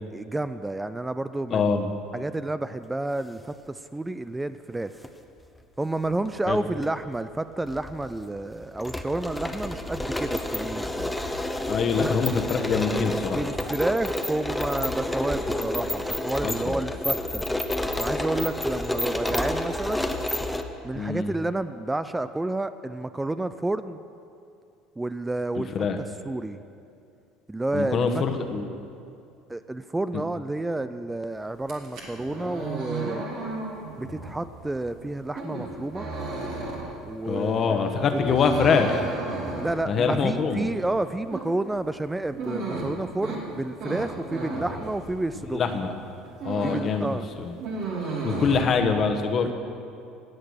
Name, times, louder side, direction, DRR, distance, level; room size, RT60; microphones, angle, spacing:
voice 1, 0.1-1.9 2.1-4.9 5.8-11.2 12.0-12.1 13.3-17.4 18.0-20.1 20.8-24.0 25.0-25.9 26.2-26.6 27.5-28.2 29.5-33.2 34.0-36.1 37.0-37.8 38.1-38.2 39.6-45.6 46.6-47.2 48.6-48.7 49.4-49.5, right 2 dB, 10° right, 12 dB, 0.4 m, -30 dB
voice 2, 1.5-1.9 6.5-6.6 11.7-13.4 16.4-16.7 20.9-21.3 25.6-26.0 27.7-28.7 30.1-30.2 37.2-39.0 39.9-40.7 45.5-45.9 46.4-47.5 48.2-49.5, left 5 dB, 45° left, 6 dB, 1.2 m, -24 dB
sound 1, 4.8-5.1 6.1-6.9 7.1-7.2 7.7-20.6, left 1 dB, 5° left, 0.9 m, -30 dB
sound 2, 31.6-45.6 46.0-47.0 47.2-48.6, right 3 dB, 65° right, 2.7 m, -34 dB
17.5 x 6.6 x 6.4 m, 2.6 s
hypercardioid pair, 75°, 0 cm